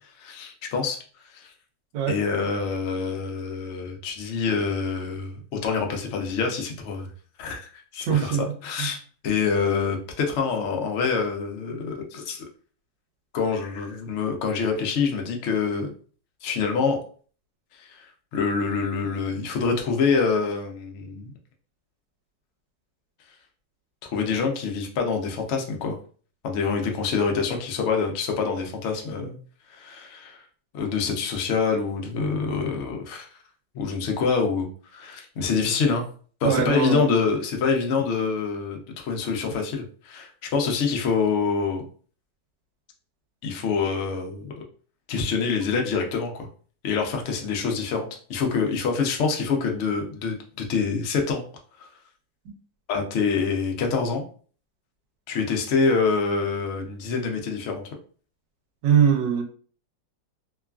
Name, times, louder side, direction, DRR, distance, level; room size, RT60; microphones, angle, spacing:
voice 1, 0.2-1.0 1.3-1.5 2.1-7.1 7.4-9.0 9.2-12.4 13.3-15.9 16.4-17.0 17.8-18.1 18.3-21.3 24.1-26.0 26.4-29.4 29.7-30.4 30.7-33.3 33.7-34.7 34.9-36.0 36.4-41.8 43.4-44.5 45.1-46.5 46.8-51.4 51.8-51.9 52.9-54.2 55.3-57.8, left 5 dB, 80° left, 2 dB, 0.6 m, -26 dB
voice 2, 8.1-8.5 8.8-8.9 36.4-37.1 58.8-59.4, right 8 dB, 80° right, 4 dB, 1.3 m, -21 dB
3.0 x 2.3 x 2.2 m, 0.43 s
omnidirectional pair, 1.9 m